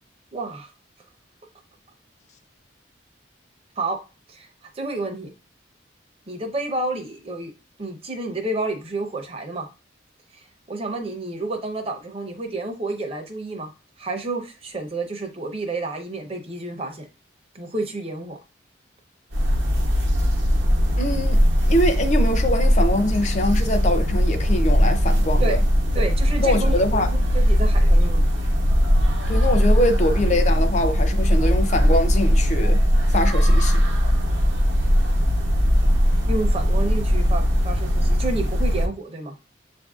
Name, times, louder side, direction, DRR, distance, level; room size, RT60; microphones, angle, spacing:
voice 1, 0.3-0.7 3.8-4.0 4.3-4.5 4.7-5.3 6.3-7.5 7.8-9.7 10.3-13.7 14.0-17.1 17.5-18.4 25.4-25.6 25.9-28.3 36.3-39.3, right 2 dB, 30° right, 0.6 m, -30 dB
sound 1, 19.3-38.9, equal, 80° right, 0.8 m, -19 dB
voice 2, 21.0-21.4 21.7-25.6 26.4-27.1 29.3-32.8 33.1-33.8, left 1 dB, 35° left, 0.5 m, -23 dB
7.6 x 2.5 x 2.4 m
head